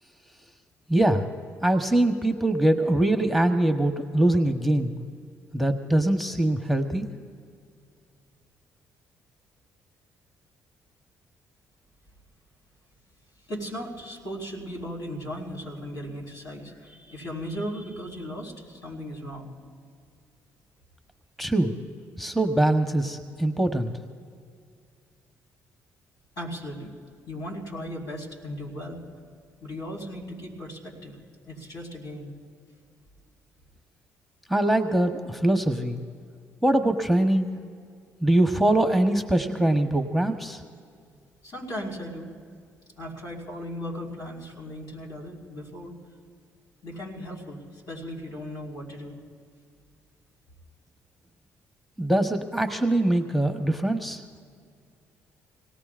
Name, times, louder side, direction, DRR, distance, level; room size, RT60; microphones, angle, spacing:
voice 1, 0.9-1.3 1.6-5.0 5.5-7.1 21.4-21.7 22.2-23.9 34.5-36.0 36.6-37.5 38.2-40.6 52.0-54.2, right 1 dB, ahead, 6 dB, 1.1 m, -23 dB
voice 2, 13.5-19.5 26.4-26.9 27.3-29.0 29.6-31.2 31.4-32.3 40.5-40.6 41.4-42.3 43.0-45.9 46.8-49.2, equal, 70° left, -3 dB, 4.7 m, -37 dB
27.0 x 18.0 x 2.5 m, 2.2 s
supercardioid pair, 60°, 7 cm